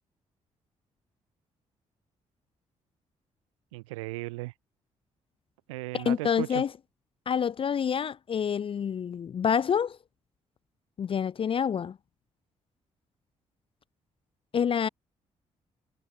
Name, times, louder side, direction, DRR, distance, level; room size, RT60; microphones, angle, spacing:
voice 1, 3.7-4.5 5.7-6.6, right 21 dB, 75° right, 0.9 m, -36 dB
voice 2, 5.9-6.7 7.3-10.0 11.0-12.0 14.5-14.9, left 7 dB, 35° left, 0.4 m, -27 dB
figure-of-eight pair, 40°, 16 cm